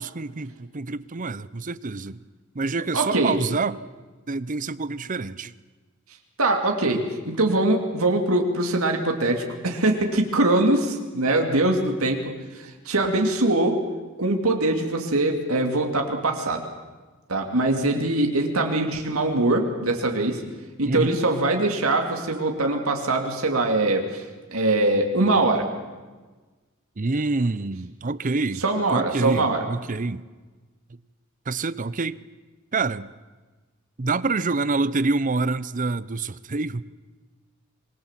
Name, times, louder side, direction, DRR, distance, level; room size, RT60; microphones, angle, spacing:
voice 1, 0.0-2.2 2.5-3.8 4.3-5.5 20.9-21.2 27.0-28.6 28.9-30.2 31.5-32.2 32.7-33.1 34.0-36.8, right 3 dB, 40° right, 0.7 m, -27 dB
voice 2, 2.9-3.4 6.4-13.8 14.2-16.6 17.3-20.4 20.8-24.2 24.5-25.7 28.6-29.6, right 2 dB, 85° right, 2.8 m, -22 dB
26.0 x 21.0 x 7.5 m
head